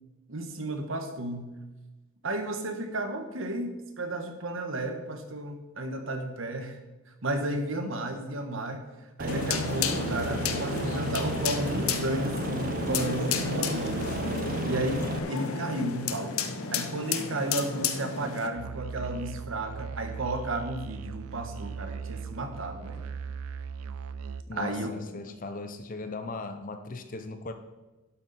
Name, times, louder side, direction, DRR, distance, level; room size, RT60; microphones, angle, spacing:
voice 1, 0.3-1.5 2.2-6.8 7.2-8.9 9.2-14.1 14.6-23.0 24.5-24.9, right 1 dB, 65° right, 6 dB, 1.4 m, -33 dB
Aircraft, 9.2-15.2, right 1 dB, 40° right, 0.7 m, -34 dB
sound 1, 9.3-18.5, left 5 dB, 85° left, 0.9 m, -32 dB
Musical instrument, 18.6-24.4, right 6 dB, 90° right, 0.4 m, -38 dB
voice 2, 24.5-27.5, left 3 dB, 40° left, 9 dB, 0.7 m, -38 dB
11.5 x 8.1 x 4.2 m, 1.1 s
head